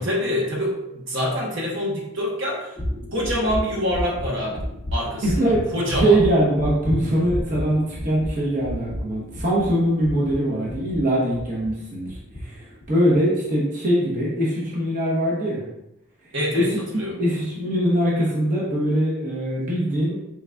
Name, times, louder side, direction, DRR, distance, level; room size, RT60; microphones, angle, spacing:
voice 1, 0.0-2.8 3.1-4.6 4.9-6.2 16.3-17.2, equal, 60° right, -3 dB, 1.0 m, -26 dB
sound 1, 2.8-11.7 12.1-12.4 12.8-13.1, equal, 20° left, 0.7 m, -31 dB
voice 2, 5.2-5.7 6.0-15.6 16.5-16.8 17.2-20.2, right 1 dB, 35° right, -6 dB, 0.9 m, -22 dB
4.7 x 3.8 x 2.3 m, 0.89 s
head